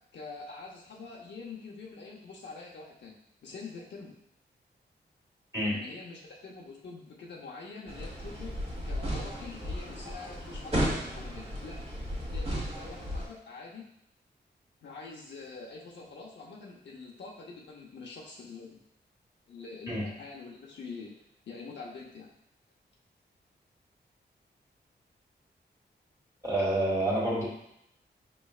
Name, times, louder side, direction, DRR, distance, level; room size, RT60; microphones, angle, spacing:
voice 1, 0.1-3.1 3.4-4.1 5.7-8.6 8.8-11.8 12.3-13.8 14.8-18.8 19.5-21.1 21.5-22.3, left 4 dB, 80° left, -3 dB, 0.8 m, -45 dB
sound 1, 7.9-13.3, equal, 35° right, 1.3 m, -34 dB
voice 2, 26.4-27.4, right 1 dB, 15° right, -7 dB, 1.5 m, -28 dB
5.3 x 3.1 x 2.4 m, 0.76 s
wide cardioid pair, 95°, 18 cm